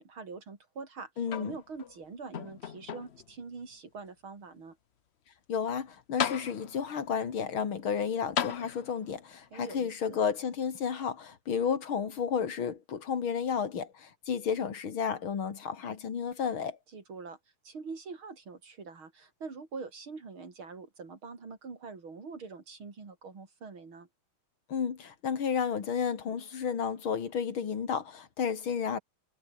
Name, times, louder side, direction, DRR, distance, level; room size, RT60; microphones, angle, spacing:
voice 1, 0.0-4.8 9.5-10.2 16.9-17.4 17.6-24.1, right 4 dB, 85° right, 4.7 m, -44 dB
voice 2, 1.2-1.6 5.5-16.8 24.7-29.0, left 7 dB, 85° left, 3.0 m, -32 dB
sound 1, 1.3-1.9 2.3-3.3 4.0-4.1 5.7-5.8 6.2-7.0 8.3-9.2 10.3-10.4, left 8 dB, 60° left, 0.7 m, -35 dB
omnidirectional pair, 2.2 m